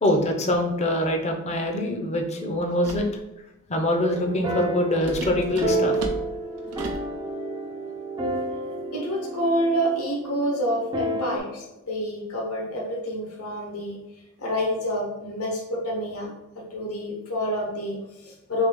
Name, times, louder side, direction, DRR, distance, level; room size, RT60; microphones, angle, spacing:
voice 1, 0.0-3.0 3.7-6.0, left 1 dB, 30° left, 3 dB, 0.6 m, -24 dB
sound 1, 2.8-3.2 5.0-7.1, right 2 dB, 85° right, 0.6 m, -35 dB
Hope ( Music sad melody ), 4.0-11.4, right 2 dB, 20° right, 0.5 m, -30 dB
voice 2, 8.9-14.0 14.4-16.3 16.7-18.7, equal, 70° left, -2 dB, 0.9 m, -28 dB
3.5 x 3.3 x 3.6 m, 0.93 s
head